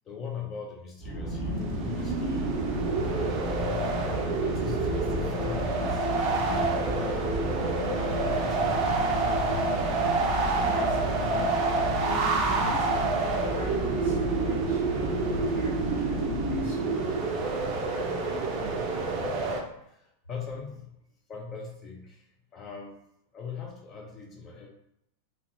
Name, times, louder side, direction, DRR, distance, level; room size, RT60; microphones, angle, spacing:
voice 1, 0.0-2.6 3.7-3.8 4.4-7.3 7.8-8.9 19.9-20.9 21.3-22.3 22.5-23.0 23.3-24.7, left 6 dB, 25° left, 0 dB, 0.6 m, -41 dB
sound 1, 1.0-16.7, left 1 dB, 10° left, 1.2 m, -33 dB
sound 2, 1.2-19.6, right 3 dB, 35° right, 0.5 m, -28 dB
voice 2, 9.9-19.3, right 1 dB, 60° left, -7 dB, 1.4 m, -42 dB
2.5 x 2.3 x 2.9 m, 0.78 s
figure-of-eight pair, 90°, 0 cm